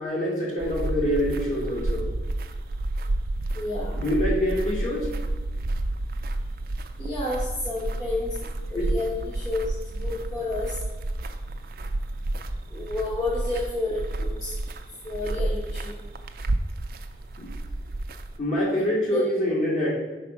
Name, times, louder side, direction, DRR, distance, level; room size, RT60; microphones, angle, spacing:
voice 1, 0.0-2.1 3.9-5.1 8.7-8.9 17.4-17.5 18.4-19.9, equal, 45° left, -5 dB, 2.0 m, -25 dB
sound 1, 0.6-18.4, right 2 dB, 55° right, 0.4 m, -31 dB
voice 2, 3.5-4.0 7.0-8.4 8.7-10.8 12.7-14.5 15.0-16.0 19.1-19.2, left 2 dB, 20° left, -7 dB, 1.0 m, -30 dB
5.4 x 4.1 x 5.1 m, 1.3 s
head